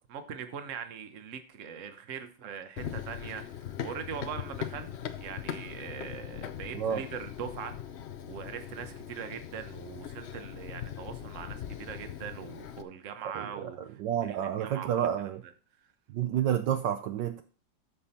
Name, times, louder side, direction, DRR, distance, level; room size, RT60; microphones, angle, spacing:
voice 1, 0.1-4.9 5.2-7.7 8.2-13.8 14.2-15.1, right 7 dB, 50° right, 8 dB, 1.2 m, -41 dB
Run, 2.8-12.8, left 9 dB, 85° left, 0.5 m, -40 dB
voice 2, 13.2-15.4 16.1-17.4, right 10 dB, 70° right, 8 dB, 1.3 m, -30 dB
13.0 x 5.5 x 4.3 m, 0.40 s
omnidirectional pair, 2.1 m